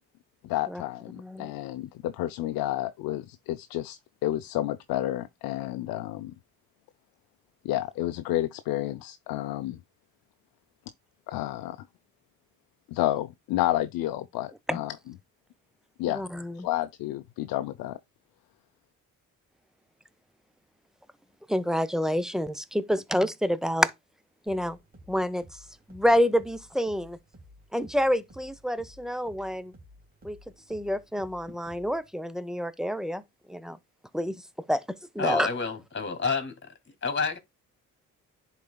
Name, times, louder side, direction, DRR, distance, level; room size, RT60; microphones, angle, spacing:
voice 1, 0.4-6.3 7.6-9.8 11.3-11.8 12.9-14.9 16.0-16.2 16.6-18.0, left 14 dB, 85° left, 0.5 m, -30 dB
voice 2, 1.1-1.5 14.7-14.8 16.1-16.7 21.5-23.9 24.5-24.8 25.1-25.6 25.9-27.2 27.7-29.7 30.2-30.4 30.7-33.2 33.5-33.8 34.1-35.5, equal, ahead, 0.7 m, -28 dB
sound 1, 24.5-32.1, equal, 25° right, 2.6 m, -54 dB
voice 3, 35.2-36.6 37.0-37.4, left 4 dB, 35° left, 2.6 m, -29 dB
10.5 x 4.1 x 2.2 m
supercardioid pair, 65°, 34 cm